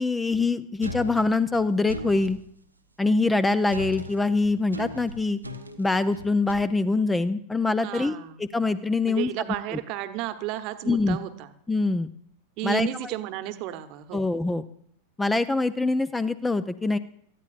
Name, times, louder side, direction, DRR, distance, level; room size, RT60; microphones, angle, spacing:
voice 1, 0.0-2.4 3.0-5.4 5.8-9.3 10.9-11.2 11.7-12.1 12.6-13.1 14.1-14.6 15.2-17.0, left 3 dB, 10° left, 14 dB, 0.5 m, -24 dB
sound 1, 0.8-2.4 3.7-6.5, equal, 85° right, 1.0 m, -38 dB
voice 2, 7.8-8.4 9.1-11.5 12.6-14.3, right 14 dB, 40° right, 11 dB, 1.0 m, -33 dB
19.0 x 14.0 x 2.5 m, 0.69 s
figure-of-eight pair, 90°, 0 cm